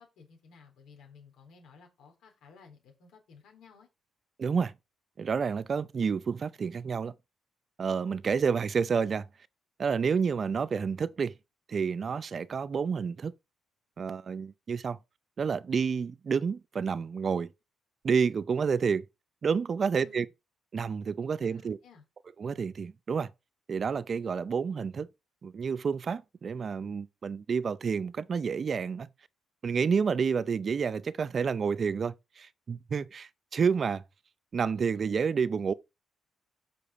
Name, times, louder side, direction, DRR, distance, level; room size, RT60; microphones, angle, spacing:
voice 1, 0.0-3.9 20.0-20.3 21.4-22.0, left 5 dB, 80° left, 3.8 m, -56 dB
voice 2, 4.4-4.7 5.2-7.1 7.8-9.3 9.8-11.3 11.7-13.3 14.0-15.0 15.4-17.5 18.0-19.1 19.4-20.3 20.7-21.8 22.4-23.3 23.7-25.1 25.4-29.1 29.6-34.0 34.5-35.7, right 6 dB, 45° right, 0.5 m, -29 dB
6.7 x 5.8 x 5.5 m
cardioid pair, 90°, 0 cm